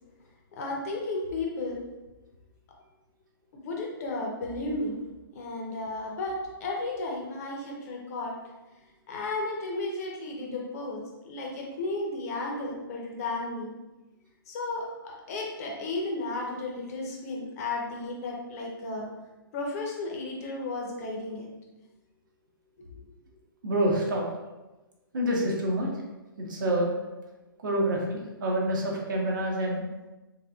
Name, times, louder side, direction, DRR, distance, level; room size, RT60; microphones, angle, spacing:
voice 1, 0.6-1.8 3.5-4.9 5.3-8.3 9.1-11.0 11.2-13.7 14.5-19.1 19.5-21.5 22.8-23.0, left 2 dB, 40° left, -1 dB, 0.9 m, -33 dB
voice 2, 23.6-24.2 25.1-25.9 26.4-26.9 27.6-29.8, right 1 dB, 55° right, -1 dB, 1.1 m, -27 dB
3.8 x 3.5 x 2.4 m, 1.1 s
figure-of-eight pair, 125°, 12 cm